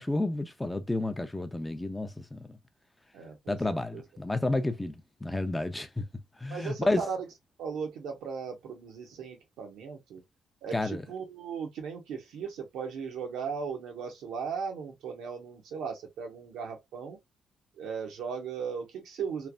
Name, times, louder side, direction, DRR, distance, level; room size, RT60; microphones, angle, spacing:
voice 1, 0.0-2.6 3.5-6.0 6.4-7.0 10.7-11.0, left 2 dB, 10° left, 0.5 m, -31 dB
voice 2, 3.1-4.0 6.5-7.3 7.6-10.2 10.6-17.2 17.8-19.5, right 6 dB, 85° right, 0.9 m, -37 dB
3.2 x 2.0 x 2.4 m
cardioid pair, 90°, 0 cm